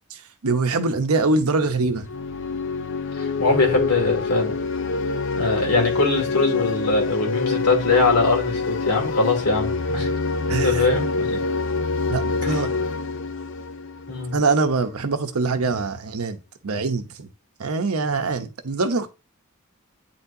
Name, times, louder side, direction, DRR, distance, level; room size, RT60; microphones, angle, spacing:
voice 1, 0.1-2.1 10.5-10.9 12.1-12.7 14.3-16.4 16.6-17.3 17.6-19.1, right 3 dB, 85° right, 0.9 m, -23 dB
sound 1, 1.9-14.6, left 4 dB, 60° left, 0.5 m, -26 dB
voice 2, 3.2-4.5 5.4-10.1 10.6-11.4 12.4-12.6 14.1-14.4, left 3 dB, 90° left, 2.4 m, -22 dB
9.2 x 4.2 x 2.7 m
head